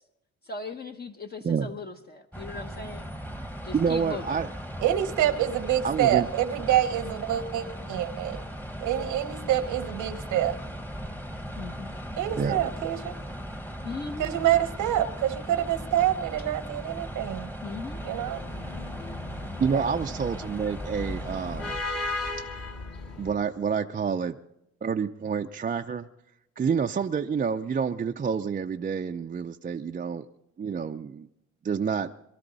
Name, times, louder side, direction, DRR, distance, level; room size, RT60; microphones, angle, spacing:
voice 1, 0.4-3.1 3.6-4.4 11.5-11.9 13.8-14.3 17.6-18.0, left 3 dB, 30° left, 4 dB, 0.9 m, -38 dB
sound 1, 2.3-21.8, equal, 5° left, 1.1 m, -38 dB
voice 2, 3.7-4.5 5.8-6.3 12.4-12.6 19.6-21.8 23.2-24.4 24.8-26.1 26.6-30.3 30.6-31.3 31.6-32.1, right 6 dB, 30° right, 5 dB, 0.5 m, -28 dB
voice 3, 4.8-8.4 8.8-10.6 12.2-13.1 14.2-17.5 18.0-18.4 19.7-19.8, right 12 dB, 90° right, 11 dB, 1.1 m, -26 dB
sound 2, 17.9-23.4, left 2 dB, 50° left, 2.2 m, -36 dB
23.0 x 12.5 x 4.0 m, 0.83 s
cardioid pair, 90°, 30 cm